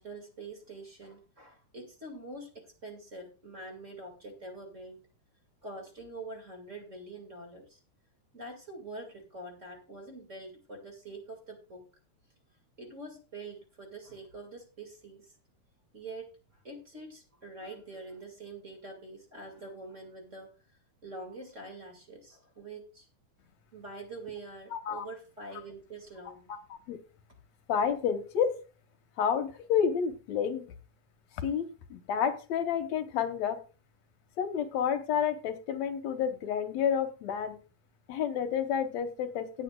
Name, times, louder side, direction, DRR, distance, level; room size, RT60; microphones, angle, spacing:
voice 1, 0.0-5.0 5.6-7.8 8.3-11.8 12.8-15.4 15.9-20.5 21.0-23.1 23.7-26.5, right 2 dB, 25° right, 3 dB, 2.1 m, -45 dB
voice 2, 24.7-25.1 26.5-26.6 26.9-27.0 27.7-28.5 29.2-30.6 31.4-33.6 34.4-37.6 38.1-39.6, left 7 dB, 65° left, 8 dB, 2.1 m, -30 dB
17.5 x 8.7 x 2.4 m, 0.33 s
omnidirectional pair, 3.6 m